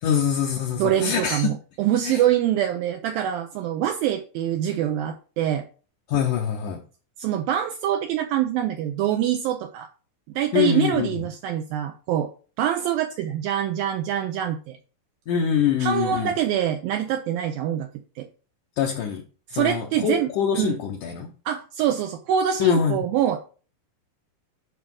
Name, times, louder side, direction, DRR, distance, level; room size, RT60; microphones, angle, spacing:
voice 1, 0.0-1.5 2.0-2.2 6.1-6.8 10.5-11.1 15.3-16.3 18.8-19.2 19.5-21.3 22.6-23.0, left 8 dB, 75° left, 1 dB, 1.8 m, -24 dB
voice 2, 0.8-5.7 7.2-9.9 10.4-12.3 12.6-14.8 15.8-17.9 18.2-18.3 19.5-20.8 21.5-23.4, right 10 dB, 90° right, 6 dB, 2.1 m, -25 dB
11.0 x 4.8 x 3.8 m, 0.38 s
omnidirectional pair, 4.8 m